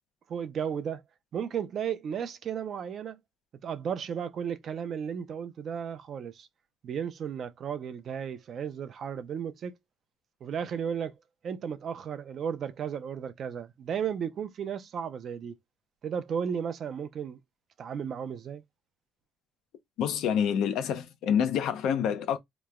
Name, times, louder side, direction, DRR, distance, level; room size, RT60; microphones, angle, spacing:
voice 1, 0.3-1.0 1.3-3.2 3.6-6.5 6.8-9.7 10.4-11.1 11.4-15.5 16.0-17.4 17.8-18.6, right 7 dB, 50° right, 0.5 m, -34 dB
voice 2, 20.0-22.4, left 8 dB, 85° left, 0.6 m, -27 dB
3.0 x 2.1 x 3.5 m
cardioid pair, 130°, 0 cm